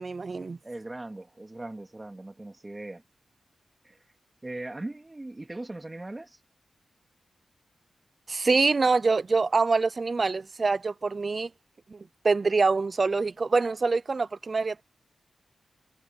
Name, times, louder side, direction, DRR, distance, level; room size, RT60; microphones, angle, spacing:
voice 1, 0.0-0.6 8.3-11.5 11.9-14.8, right 4 dB, 45° right, 0.5 m, -25 dB
voice 2, 0.6-3.0 3.8-4.0 4.4-6.4, right 2 dB, 25° right, 2.9 m, -39 dB
cardioid pair, 60°, 0 cm